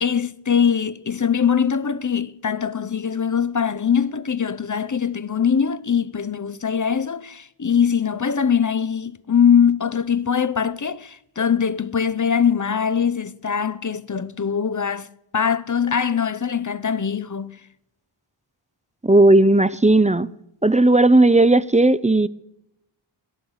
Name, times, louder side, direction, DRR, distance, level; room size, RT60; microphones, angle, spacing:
voice 1, 0.0-15.1 15.3-17.5, left 7 dB, 40° left, 0.7 m, -22 dB
voice 2, 19.0-20.3 20.6-22.3, right 2 dB, 15° right, 0.6 m, -15 dB
18.0 x 11.5 x 6.4 m
wide cardioid pair, 40°, 49 cm